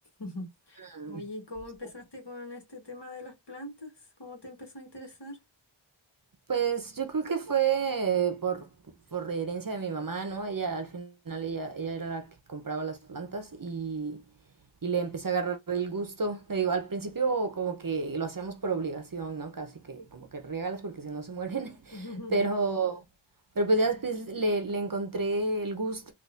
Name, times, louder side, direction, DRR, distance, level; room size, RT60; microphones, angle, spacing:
voice 1, 0.2-5.4 21.9-22.5, left 2 dB, 55° left, 1.6 m, -42 dB
voice 2, 6.5-8.7 9.1-14.2 14.8-23.0 23.5-26.1, right 4 dB, 45° right, 0.8 m, -30 dB
4.1 x 2.6 x 2.5 m
wide cardioid pair, 55°, 47 cm